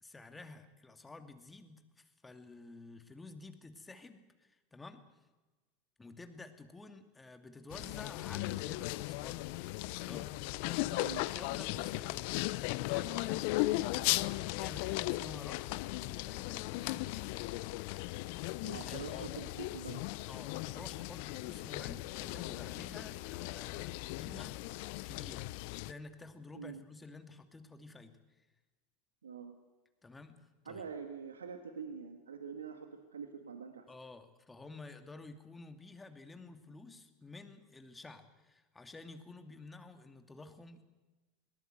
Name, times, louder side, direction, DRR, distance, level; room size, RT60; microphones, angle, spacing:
voice 1, 0.0-5.0 6.0-18.0 18.7-19.3 20.3-24.6 25.0-28.5 30.0-30.8 33.9-40.8, left 3 dB, 15° left, 7 dB, 2.5 m, -52 dB
sound 1, 7.7-25.9, left 19 dB, 60° left, 0.7 m, -37 dB
voice 2, 10.9-11.2 18.6-20.0 26.5-26.8 29.2-29.5 30.7-33.9, right 6 dB, 85° right, 7 dB, 1.8 m, -45 dB
21.5 x 19.5 x 7.9 m, 1.2 s
hypercardioid pair, 85°, 0 cm